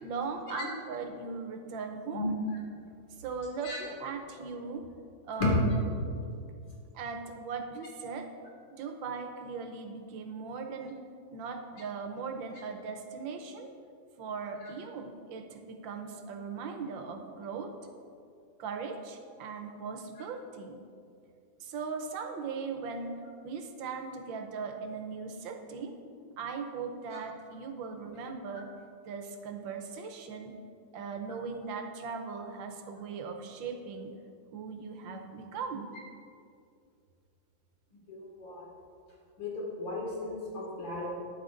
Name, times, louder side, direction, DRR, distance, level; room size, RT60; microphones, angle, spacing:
voice 1, 0.0-2.3 3.2-4.9 5.2-5.6 6.9-8.3 8.8-11.0 11.3-13.7 14.2-17.7 18.6-20.8 21.6-25.9 26.4-28.7 29.0-30.6 30.9-34.1 34.5-35.9, right 5 dB, 80° right, 5 dB, 1.5 m, -39 dB
voice 2, 38.1-38.6 39.4-41.1, left 3 dB, 75° left, -4 dB, 2.6 m, -35 dB
12.0 x 9.4 x 2.5 m, 2.5 s
omnidirectional pair, 2.1 m